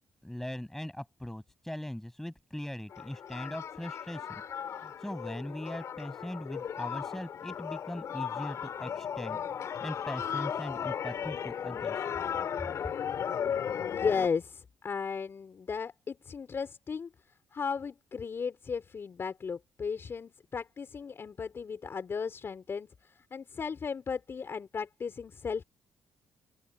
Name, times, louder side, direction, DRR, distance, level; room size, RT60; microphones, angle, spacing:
voice 1, 0.2-4.3 4.8-9.4 9.8-12.1, left 1 dB, 5° left, 6.4 m, -40 dB
sound 1, 2.9-14.3, left 8 dB, 60° left, 4.1 m, -36 dB
voice 2, 13.7-17.1 17.5-25.6, left 5 dB, 45° left, 4.1 m, -35 dB
open air
supercardioid pair, 65°, 6 cm